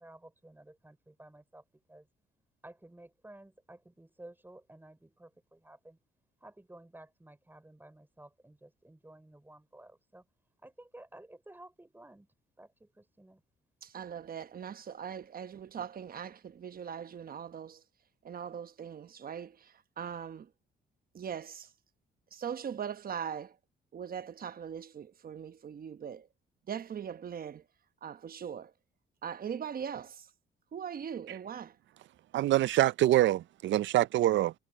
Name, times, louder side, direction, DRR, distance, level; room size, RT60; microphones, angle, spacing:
voice 1, 0.0-1.6 1.9-2.1 2.6-6.0 6.4-10.2 10.6-12.3 12.6-13.4, right 1 dB, 10° right, 5.6 m, -54 dB
voice 2, 13.8-17.8 18.2-20.5 21.1-21.7 22.3-23.5 23.9-26.3 26.7-27.6 28.0-28.7 29.2-30.3 30.7-31.7, right 8 dB, 45° right, 1.1 m, -40 dB
voice 3, 32.3-34.5, right 14 dB, 70° right, 0.5 m, -25 dB
cardioid pair, 90°, 20 cm